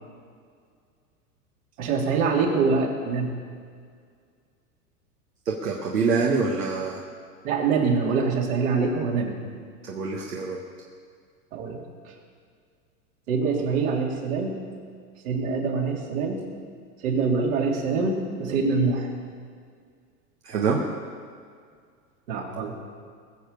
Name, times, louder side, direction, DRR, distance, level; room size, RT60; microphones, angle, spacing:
voice 1, 1.8-3.4 7.4-9.4 11.5-11.8 13.3-14.6 15.2-16.4 17.0-19.1 22.3-22.8, right 4 dB, 60° right, 0 dB, 3.3 m, -24 dB
voice 2, 5.4-7.0 9.8-10.6 20.4-20.8, right 4 dB, 80° right, -1 dB, 1.7 m, -25 dB
21.0 x 7.3 x 6.8 m, 2.1 s
hypercardioid pair, 105°, 46 cm